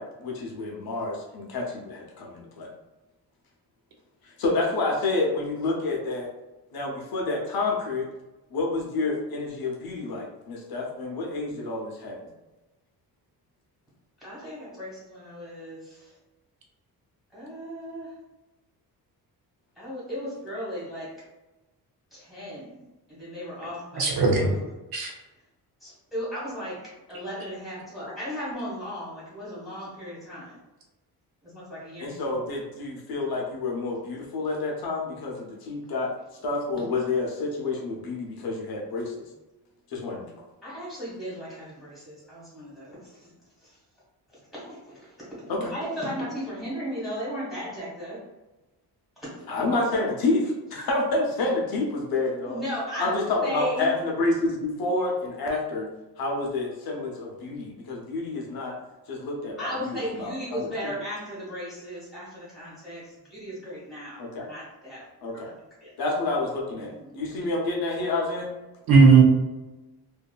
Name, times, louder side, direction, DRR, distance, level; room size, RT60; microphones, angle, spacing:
voice 1, 0.0-2.7 4.4-6.3 6.7-8.1 8.5-12.2 32.0-36.1 36.4-39.3 39.9-40.3 45.5-45.7 49.5-52.6 53.0-55.9 56.2-58.7 59.1-60.7 64.2-64.5 65.2-65.6 66.0-68.5, left 2 dB, 65° left, -1 dB, 0.7 m, -29 dB
voice 2, 14.2-16.2 17.3-18.1 19.8-21.1 22.1-22.8 23.1-24.5 25.8-26.8 27.1-30.6 31.4-32.2 40.6-43.3 43.6-43.7 44.5-45.1 45.6-48.2 49.2-49.4 52.5-53.9 59.6-65.0 65.3-65.4 65.8-65.9 66.7-67.1, equal, ahead, -8 dB, 1.4 m, -36 dB
voice 3, 24.0-24.5 24.9-25.1 68.9-69.2, right 4 dB, 65° right, 1 dB, 0.6 m, -16 dB
2.6 x 2.3 x 2.2 m, 1.1 s
cardioid pair, 150°, 39 cm